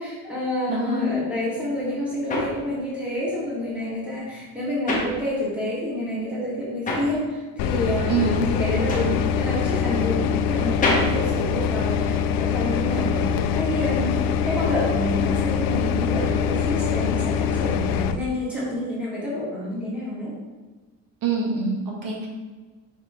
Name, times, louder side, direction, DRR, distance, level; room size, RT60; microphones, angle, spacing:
voice 1, 0.0-20.4, left 1 dB, 5° right, -8 dB, 1.9 m, -28 dB
voice 2, 0.7-1.1 8.1-8.4 21.2-22.3, right 4 dB, 70° right, -2 dB, 1.7 m, -25 dB
sound 1, 1.5-5.8 6.1-12.3, left 2 dB, 25° left, 1.1 m, -30 dB
sound 2, 7.6-18.2, left 7 dB, 85° left, 0.5 m, -24 dB
6.0 x 4.8 x 3.7 m, 1.3 s
cardioid pair, 175°, 34 cm